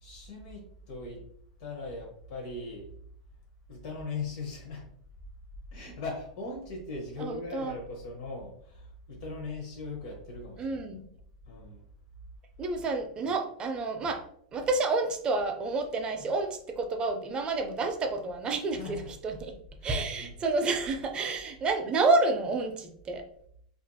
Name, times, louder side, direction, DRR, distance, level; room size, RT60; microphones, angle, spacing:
voice 1, 0.0-1.2 1.6-2.9 3.7-4.8 5.7-10.9 11.5-11.8 18.8-19.1 19.8-20.4, left 3 dB, 55° left, -1 dB, 0.7 m, -39 dB
voice 2, 7.2-7.8 10.6-11.0 12.6-14.3 14.5-19.5 19.8-23.2, right 3 dB, 25° right, 5 dB, 0.4 m, -29 dB
2.7 x 2.4 x 2.2 m, 0.64 s
hypercardioid pair, 130°, 4 cm